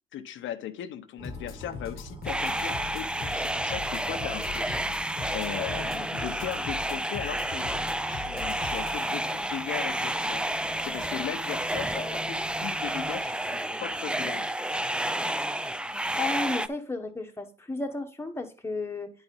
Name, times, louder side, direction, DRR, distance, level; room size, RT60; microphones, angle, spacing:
voice 1, 0.1-7.7 8.0-10.5 10.8-14.5, left 10 dB, 75° left, 0.7 m, -38 dB
sound 1, 1.2-9.0, left 7 dB, 50° left, 1.0 m, -41 dB
sound 2, 1.2-13.2, right 2 dB, 25° right, 1.1 m, -46 dB
sound 3, 2.3-16.7, right 1 dB, 5° right, 0.4 m, -30 dB
voice 2, 16.2-19.1, left 3 dB, 10° left, 1.1 m, -33 dB
9.6 x 4.1 x 5.3 m
cardioid pair, 90°, 20 cm